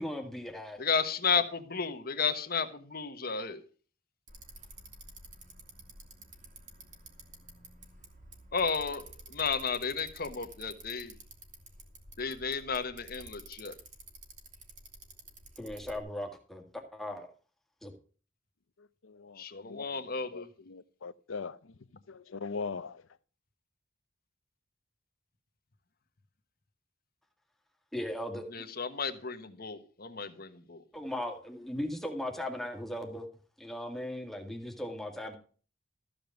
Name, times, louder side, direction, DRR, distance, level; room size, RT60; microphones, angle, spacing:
voice 1, 0.0-0.8 15.6-17.3 17.8-17.9 27.9-28.6 30.9-33.3 33.6-35.4, left 1 dB, ahead, 2.0 m, -38 dB
voice 2, 0.8-3.6 8.5-11.1 12.2-13.7 19.4-20.5 28.5-30.8, left 5 dB, 50° left, 1.3 m, -33 dB
Bicycle, 4.3-16.0, right 2 dB, 40° right, 2.8 m, -51 dB
voice 3, 18.8-20.0 20.3-21.8 22.1-23.0, left 4 dB, 80° left, 0.7 m, -41 dB
14.0 x 5.2 x 7.8 m
head